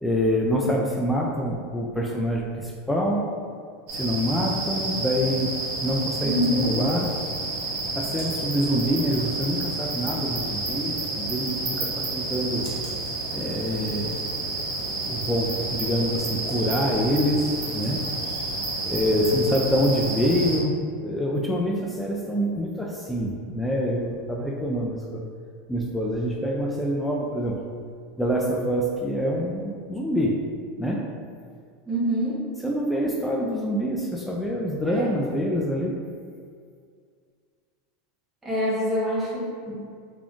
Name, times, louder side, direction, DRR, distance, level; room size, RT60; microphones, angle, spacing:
voice 1, 0.0-3.2 3.9-5.5 5.8-7.1 8.0-12.7 13.3-14.2 15.1-18.0 18.8-25.2 25.7-27.6 28.2-30.4 30.8-31.1 32.6-35.9, equal, 5° left, -2 dB, 0.3 m, -26 dB
sound 1, 3.9-20.6, right 2 dB, 65° right, 1.3 m, -30 dB
voice 2, 6.2-6.8 31.9-32.4 34.8-35.2 38.4-39.7, equal, 10° right, -7 dB, 1.1 m, -26 dB
3.6 x 3.5 x 2.4 m, 2.1 s
supercardioid pair, 140°, 0 cm